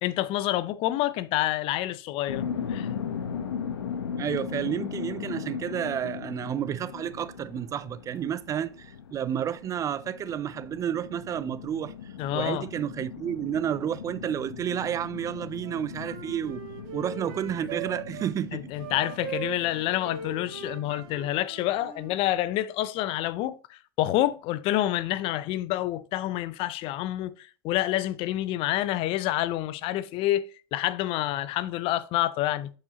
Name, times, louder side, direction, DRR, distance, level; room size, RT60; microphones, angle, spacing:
voice 1, 0.0-2.9 12.2-12.6 18.5-32.7, left 14 dB, 45° left, 0.5 m, -28 dB
sound 1, 2.3-21.2, left 7 dB, 90° left, 0.8 m, -38 dB
voice 2, 4.2-16.6 16.9-18.7, right 9 dB, 25° right, 0.3 m, -31 dB
Wind instrument woodwind instrument, 15.3-18.3 18.8-22.1, right 6 dB, 60° right, 1.9 m, -40 dB
8.3 x 4.8 x 2.9 m
hypercardioid pair, 105°, 13 cm